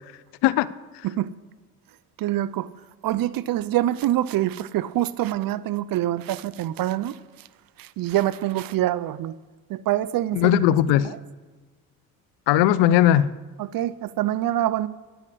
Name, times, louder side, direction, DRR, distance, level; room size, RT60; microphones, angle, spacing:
voice 1, 2.2-2.7 3.0-7.2 7.8-9.3 9.7-10.5 13.6-14.9, right 13 dB, 55° right, 0.6 m, -25 dB
voice 2, 10.3-11.1 12.5-13.3, left 12 dB, 70° left, 0.6 m, -18 dB
9.9 x 6.9 x 8.4 m
hypercardioid pair, 60°, 42 cm